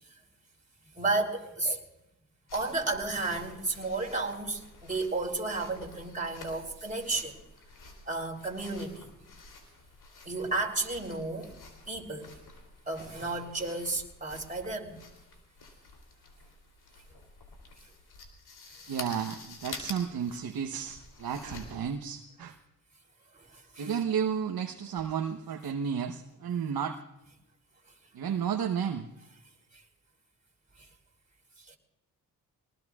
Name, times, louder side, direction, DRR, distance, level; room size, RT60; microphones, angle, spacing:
voice 1, 0.9-1.9 2.5-7.4 8.1-9.1 10.2-11.6 11.9-12.3 12.9-15.0 18.9-19.0 23.3-24.0 30.8-30.9 31.7-31.8, right 3 dB, 20° right, 3.5 m, -33 dB
sound 1, 2.5-21.9, left 3 dB, 70° left, 3.3 m, -49 dB
voice 2, 18.9-22.6 23.8-27.0 28.1-29.1, right 7 dB, 60° right, 1.1 m, -32 dB
22.5 x 19.5 x 2.4 m
supercardioid pair, 50°, 40 cm